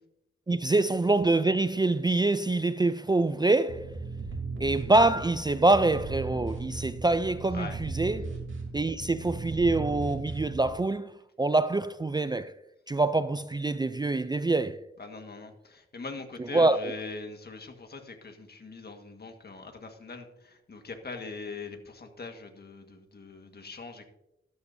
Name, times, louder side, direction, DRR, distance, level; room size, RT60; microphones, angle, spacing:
voice 1, 0.5-3.9 4.6-8.3 8.7-11.1 11.4-12.5 12.9-14.8 16.5-16.9, right 2 dB, 20° right, 0.4 m, -25 dB
sound 1, 3.7-10.7, right 3 dB, 70° right, 3.1 m, -37 dB
voice 2, 15.0-24.0, left 4 dB, 50° left, 1.6 m, -42 dB
13.0 x 13.0 x 2.7 m
wide cardioid pair, 120°, 21 cm